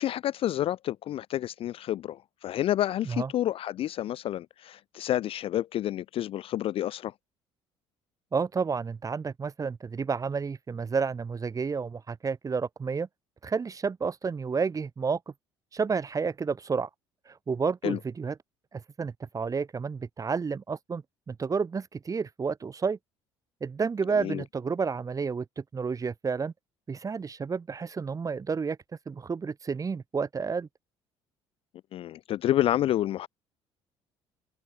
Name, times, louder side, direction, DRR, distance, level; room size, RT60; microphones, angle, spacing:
voice 1, 0.0-7.1 17.8-18.0 24.1-24.4 31.9-33.3, left 12 dB, 40° left, 0.3 m, -29 dB
voice 2, 8.3-13.1 13.4-15.2 15.7-16.9 17.3-18.3 18.7-23.0 23.6-26.5 26.9-28.8 29.1-30.7, right 5 dB, 25° right, 0.7 m, -30 dB
figure-of-eight pair, 55°, 15 cm